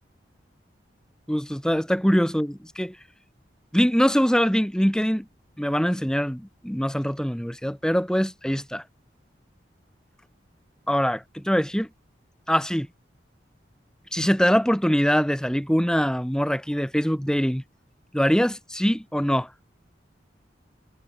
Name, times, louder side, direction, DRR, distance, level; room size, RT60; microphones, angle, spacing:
voice 1, 1.3-3.0 3.7-5.3 5.6-8.8 10.9-11.9 12.5-12.9 14.1-17.6 18.1-19.5, equal, 5° left, 1.8 m, -23 dB
head